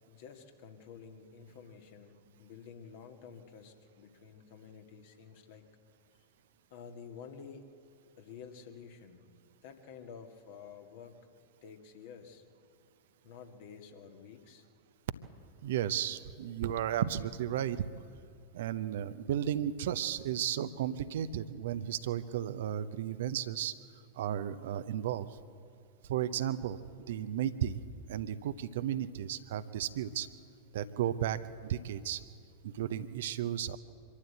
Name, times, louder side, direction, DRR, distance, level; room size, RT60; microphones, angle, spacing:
voice 1, 0.1-5.6 6.7-7.7 8.2-9.3 9.6-11.1 11.6-12.4 13.2-14.7, left 6 dB, 50° left, 4 dB, 2.0 m, -50 dB
voice 2, 15.6-17.9 18.5-23.7 24.1-25.3 26.0-26.8 27.1-27.8 28.1-30.3 30.7-32.2 32.6-33.8, right 10 dB, 55° right, 13 dB, 0.7 m, -34 dB
24.5 x 13.0 x 8.0 m, 2.6 s
figure-of-eight pair, 90°, 0 cm